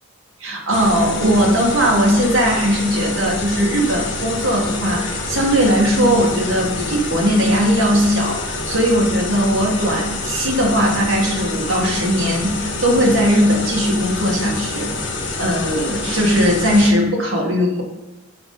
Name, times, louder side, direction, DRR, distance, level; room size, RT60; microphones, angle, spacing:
voice 1, 0.4-14.9 15.4-17.8, equal, 85° right, -1 dB, 2.0 m, -18 dB
sound 1, 0.7-16.9, left 3 dB, 65° left, 1.6 m, -27 dB
6.8 x 5.4 x 5.5 m, 1.0 s
head